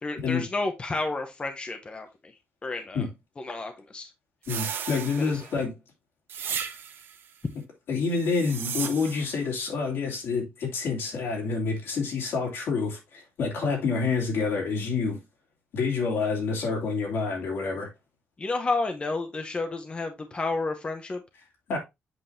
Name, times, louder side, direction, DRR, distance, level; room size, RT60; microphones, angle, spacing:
voice 1, 0.0-2.3 2.6-3.1 3.4-4.1 5.2-5.5 18.4-21.2, left 3 dB, 25° left, 0.8 m, -31 dB
sound 1, 4.4-5.6 6.3-7.2 8.1-9.4, right 8 dB, 70° right, 0.8 m, -35 dB
voice 2, 4.5-5.8 7.9-15.2 15.7-17.9 21.7-21.8, left 4 dB, 80° left, 2.8 m, -28 dB
7.8 x 5.2 x 2.6 m
cardioid pair, 110°, 4 cm